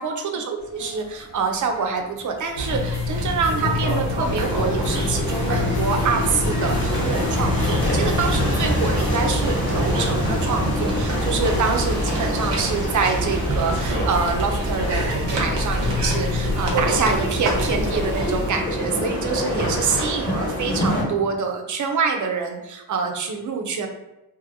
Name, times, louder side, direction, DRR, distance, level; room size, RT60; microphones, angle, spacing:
voice 1, 0.0-23.9, right 5 dB, 50° right, 4 dB, 0.5 m, -26 dB
sound 1, 0.6-18.4, left 5 dB, 45° left, 0.5 m, -31 dB
sound 2, 2.5-18.5, right 1 dB, 85° right, 0.7 m, -28 dB
sound 3, 4.2-21.0, equal, 30° left, 1.0 m, -26 dB
2.7 x 2.6 x 2.6 m, 0.95 s
wide cardioid pair, 125°, 41 cm